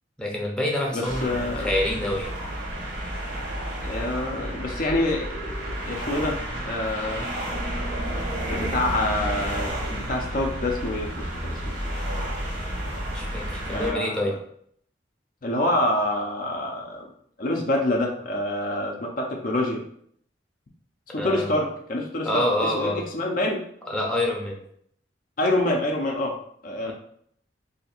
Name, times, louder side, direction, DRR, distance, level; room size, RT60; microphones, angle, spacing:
voice 1, 0.2-2.4 13.1-14.3 21.2-21.6 22.2-23.0 23.9-24.6 26.9-27.0, left 1 dB, 5° left, -2 dB, 0.6 m, -27 dB
voice 2, 0.9-1.7 3.8-7.3 8.5-11.8 13.7-14.4 15.4-17.1 17.4-19.8 21.1-23.6 25.4-26.4 26.6-26.9, left 1 dB, 50° left, 1 dB, 0.6 m, -27 dB
sound 1, 1.0-13.9, equal, 70° right, 1.0 m, -31 dB
2.8 x 2.5 x 4.2 m, 0.66 s
head